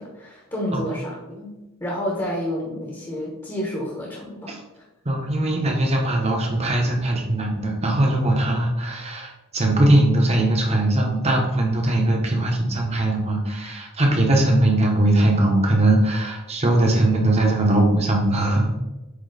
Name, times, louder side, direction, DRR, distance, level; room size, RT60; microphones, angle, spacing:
voice 1, 0.0-1.5 1.8-4.6, equal, 15° left, -4 dB, 1.1 m, -29 dB
voice 2, 5.0-18.8, right 1 dB, 30° right, 1 dB, 1.1 m, -20 dB
8.1 x 3.0 x 4.1 m, 1.0 s
head